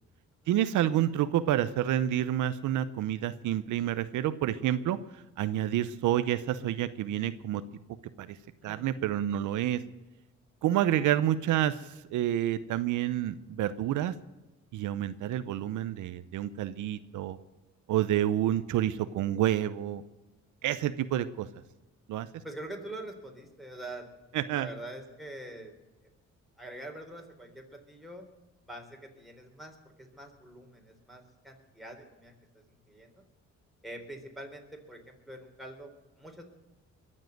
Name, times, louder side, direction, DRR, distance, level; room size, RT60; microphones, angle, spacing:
voice 1, 0.5-5.0 5.4-7.6 8.2-8.3 8.6-9.8 10.6-14.1 14.7-17.4 17.9-20.0 20.6-21.5 22.1-22.3 24.3-24.7, right 12 dB, 80° right, 13 dB, 0.7 m, -28 dB
voice 2, 22.4-24.1 24.5-25.7 26.6-28.2 28.7-33.2 33.8-35.9 36.2-36.4, right 1 dB, ahead, 1 dB, 3.8 m, -45 dB
22.5 x 7.6 x 7.9 m, 1.1 s
cardioid pair, 90°, 30 cm